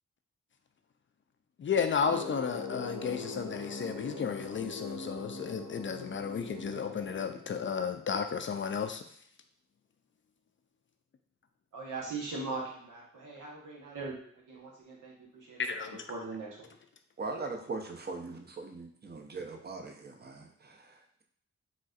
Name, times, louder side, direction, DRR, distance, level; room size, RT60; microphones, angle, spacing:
voice 1, 1.6-9.0 15.7-15.9, left 6 dB, 40° left, 6 dB, 0.4 m, -33 dB
sound 1, 2.0-7.8, left 3 dB, 80° left, 0.8 m, -42 dB
voice 2, 11.7-14.2 14.5-16.5, right 3 dB, 85° right, -3 dB, 1.0 m, -40 dB
voice 3, 17.2-21.2, right 3 dB, 35° right, 4 dB, 0.6 m, -40 dB
4.0 x 2.4 x 2.4 m, 0.65 s
supercardioid pair, 45°, 30 cm